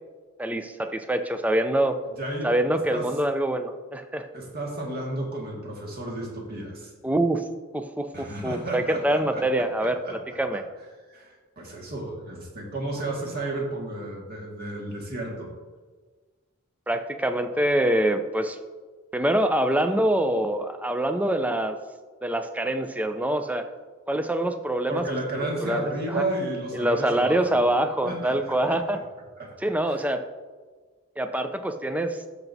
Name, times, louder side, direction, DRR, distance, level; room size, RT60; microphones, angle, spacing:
voice 1, 0.4-2.0 2.4-4.3 7.0-7.4 7.7-10.6 16.9-18.6 19.1-21.8 22.2-23.7 24.1-25.0 25.3-26.2 26.7-29.0 29.6-30.2 31.2-32.2, right 1 dB, 5° right, 8 dB, 0.4 m, -25 dB
voice 2, 2.2-2.5 2.9-3.1 4.3-6.9 8.1-10.2 10.5-10.6 11.1-15.5 24.9-27.6 28.0-29.0 29.4-29.5 29.9-30.0, right 2 dB, 45° right, -2 dB, 1.8 m, -33 dB
13.5 x 5.9 x 2.7 m, 1.4 s
head